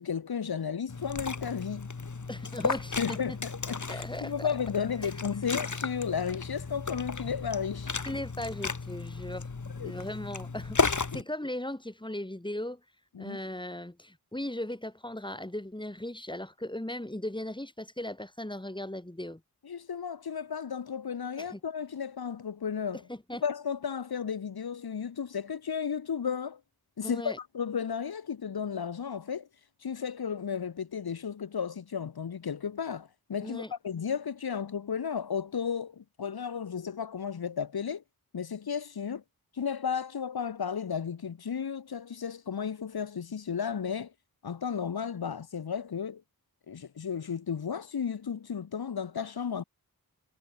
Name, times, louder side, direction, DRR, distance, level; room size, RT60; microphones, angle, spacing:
voice 1, 0.0-1.9 3.0-8.2 9.8-9.9 11.1-11.2 13.1-13.4 19.6-23.0 23.4-26.6 27.0-29.5 29.8-38.0 38.3-39.2 39.5-44.1 44.4-46.2 46.7-49.6, left 7 dB, 75° left, 1.1 m, -34 dB
Liquid, 0.9-11.2, left 4 dB, 50° left, 2.2 m, -34 dB
voice 2, 2.3-3.4 3.9-4.5 5.0-5.1 8.0-9.5 9.8-12.8 13.2-19.4 21.4-21.6 23.1-23.4 27.0-27.4 33.4-33.7, left 1 dB, 10° left, 2.2 m, -38 dB
wide cardioid pair, 50°, 37 cm